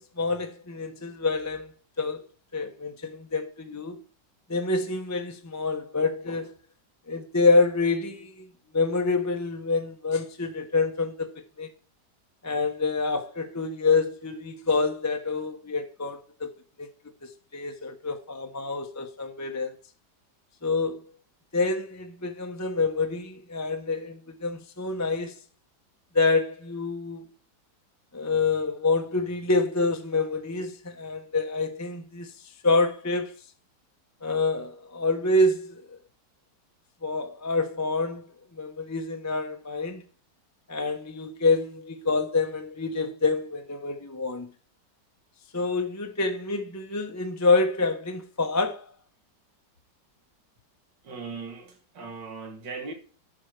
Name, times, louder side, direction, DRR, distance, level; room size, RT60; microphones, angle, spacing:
voice 1, 0.0-1.7 2.0-2.2 2.5-4.0 4.5-6.5 7.1-8.4 8.7-11.7 12.4-16.5 16.8-16.9 17.2-19.7 20.6-21.0 21.5-25.3 26.1-27.2 28.1-32.3 32.6-33.3 34.2-35.8 37.0-38.2 38.5-40.0 40.7-44.5 45.5-48.9, left 3 dB, 15° left, 0.7 m, -27 dB
voice 2, 51.0-52.9, right 4 dB, 85° right, 2.7 m, -38 dB
11.0 x 4.6 x 6.5 m
omnidirectional pair, 1.9 m